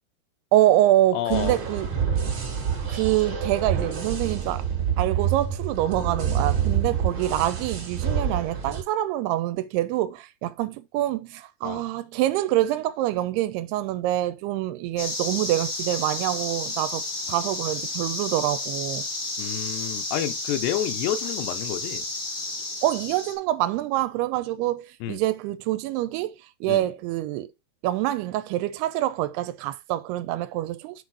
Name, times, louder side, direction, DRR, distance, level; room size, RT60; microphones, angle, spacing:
voice 1, 0.5-1.9 2.9-4.7 5.0-17.0 17.3-19.1 22.8-27.5 27.8-31.0, right 14 dB, 85° right, 2.6 m, -25 dB
voice 2, 1.1-1.6 11.6-11.8 19.4-22.1 25.0-25.2 26.7-26.9, left 12 dB, 85° left, 2.9 m, -29 dB
sound 1, 1.3-8.8, right 8 dB, 45° right, 1.6 m, -27 dB
sound 2, 15.0-23.3, left 2 dB, 70° left, 0.7 m, -31 dB
6.4 x 4.1 x 4.7 m
omnidirectional pair, 4.7 m